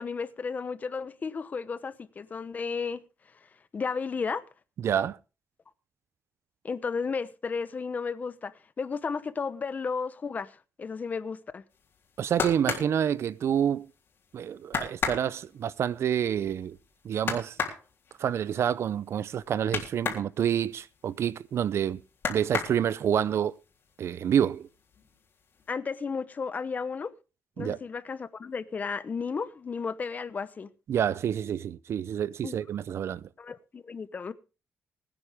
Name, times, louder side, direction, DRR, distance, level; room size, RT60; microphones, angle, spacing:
voice 1, 0.0-3.0 3.7-4.4 6.6-11.6 25.7-27.1 27.6-30.7 32.4-32.6 33.4-34.3, left 5 dB, 35° left, 0.9 m, -33 dB
voice 2, 4.8-5.2 12.2-13.9 14.3-16.8 17.0-17.6 18.2-22.0 22.3-23.5 24.0-24.7 27.6-27.8 30.9-33.3, right 9 dB, 60° right, 0.6 m, -28 dB
sound 1, 11.9-13.9 14.3-14.4 14.7-20.3 20.6-21.7 22.1-23.2 23.7-24.3 24.5-25.3 25.6-25.7, left 6 dB, 50° left, 3.6 m, -34 dB
21.5 x 9.7 x 3.5 m
wide cardioid pair, 150°, 5 cm